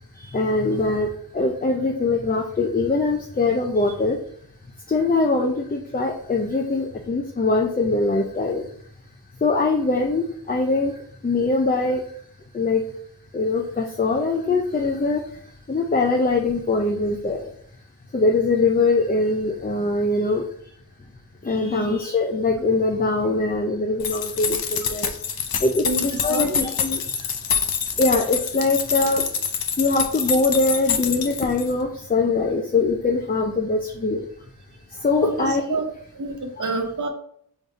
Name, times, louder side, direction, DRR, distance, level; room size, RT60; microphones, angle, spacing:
voice 1, 0.1-4.2 4.9-8.7 9.4-12.1 12.5-12.8 13.3-17.5 18.1-20.7 21.4-25.1 25.6-27.3 28.0-29.3 29.8-34.3 34.9-35.8, left 3 dB, 25° left, 1 dB, 0.5 m, -22 dB
voice 2, 21.6-21.9 25.8-26.0 26.3-26.6 35.2-35.8 36.1-37.1, right 3 dB, 55° right, 4 dB, 0.9 m, -28 dB
sound 1, 24.0-31.8, left 6 dB, 75° left, 0.6 m, -26 dB
3.8 x 3.6 x 4.0 m, 0.64 s
wide cardioid pair, 105°, 37 cm